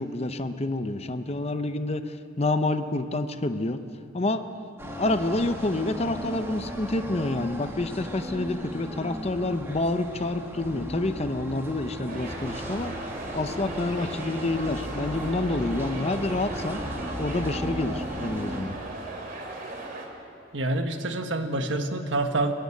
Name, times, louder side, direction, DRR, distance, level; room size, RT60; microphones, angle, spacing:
voice 1, 0.0-3.8 4.1-4.4 5.0-12.9 13.3-16.8 17.2-18.8, left 2 dB, 30° left, 9 dB, 0.7 m, -28 dB
sound 1, 4.8-18.6, equal, 15° right, 1.9 m, -36 dB
sound 2, 12.1-20.1, right 2 dB, 50° right, 2.8 m, -38 dB
voice 2, 20.5-22.5, right 2 dB, 70° right, 6 dB, 1.4 m, -27 dB
29.5 x 10.5 x 8.4 m, 2.7 s
head